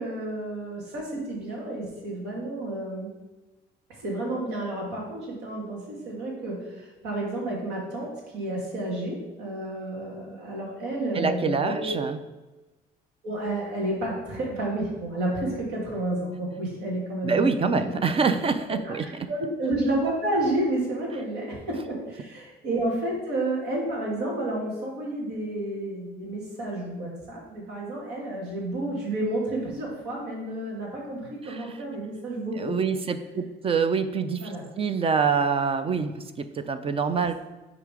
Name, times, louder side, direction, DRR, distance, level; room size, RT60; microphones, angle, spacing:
voice 1, 0.0-3.1 4.0-12.0 13.2-17.9 18.8-32.7 34.4-34.6, right 1 dB, 85° right, -2 dB, 2.2 m, -31 dB
voice 2, 11.1-12.2 17.2-19.1 31.4-31.6 32.6-37.3, right 5 dB, 35° right, 10 dB, 0.5 m, -26 dB
6.5 x 3.9 x 5.0 m, 1.1 s
cardioid pair, 110°, 17 cm